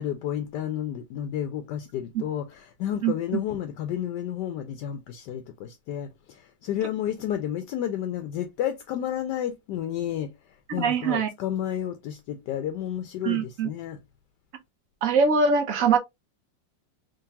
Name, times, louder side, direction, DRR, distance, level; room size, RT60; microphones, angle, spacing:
voice 1, 0.0-10.3 10.7-14.0, left 10 dB, 75° left, 1.1 m, -31 dB
voice 2, 3.0-3.4 10.7-11.3 13.2-13.7 15.0-16.0, right 5 dB, 60° right, 0.9 m, -23 dB
3.6 x 3.1 x 2.7 m
omnidirectional pair, 1.9 m